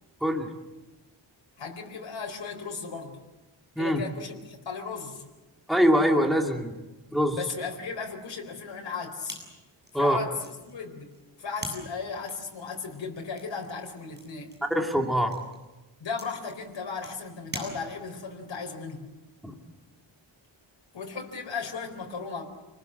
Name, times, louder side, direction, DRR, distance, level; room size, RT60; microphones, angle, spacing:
voice 1, 1.6-3.2 3.8-5.3 7.3-9.4 9.9-11.1 11.4-14.5 16.0-19.1 20.9-22.5, left 5 dB, 65° left, 1 dB, 4.3 m, -36 dB
voice 2, 5.7-6.8 7.1-7.4 9.9-10.2 14.7-15.4 19.4-19.5, equal, ahead, 2 dB, 2.5 m, -23 dB
sound 1, 9.2-18.3, right 1 dB, 20° right, 7.9 m, -45 dB
28.5 x 20.5 x 7.9 m, 1.1 s
wide cardioid pair, 140°, 47 cm